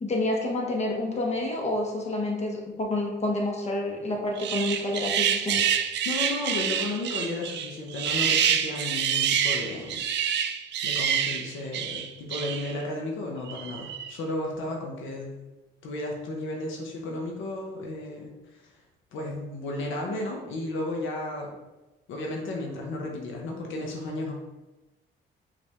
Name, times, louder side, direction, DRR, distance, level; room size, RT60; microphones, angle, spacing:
voice 1, 0.0-5.7, left 1 dB, 35° left, 0 dB, 1.0 m, -28 dB
sound 1, 4.4-12.8 13.5-14.1, right 8 dB, 60° right, 0.4 m, -27 dB
voice 2, 6.0-10.0 10.8-15.3 15.8-18.7 19.1-21.6 22.1-24.3, left 2 dB, 80° left, 0 dB, 0.8 m, -33 dB
5.2 x 2.6 x 3.4 m, 1.1 s
cardioid pair, 90°, 20 cm